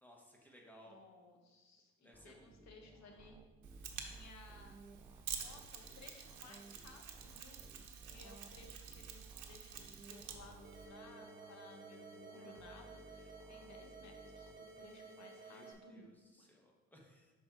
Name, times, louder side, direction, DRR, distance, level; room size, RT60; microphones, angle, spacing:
voice 1, 0.0-1.0 2.0-2.5 14.7-15.0 15.3-17.3, equal, 5° left, -1 dB, 1.3 m, -62 dB
voice 2, 0.8-3.4 4.0-4.8 5.4-7.6 8.1-16.1 16.4-16.5, left 3 dB, 65° left, 3 dB, 1.1 m, -59 dB
sound 1, 2.1-14.5, right 3 dB, 10° right, 0.4 m, -59 dB
Mechanisms, 3.6-10.9, right 7 dB, 75° right, 0.8 m, -49 dB
sound 2, 10.6-15.7, right 4 dB, 30° right, 1.5 m, -55 dB
6.0 x 4.7 x 3.9 m, 1.3 s
cardioid pair, 90°, 30 cm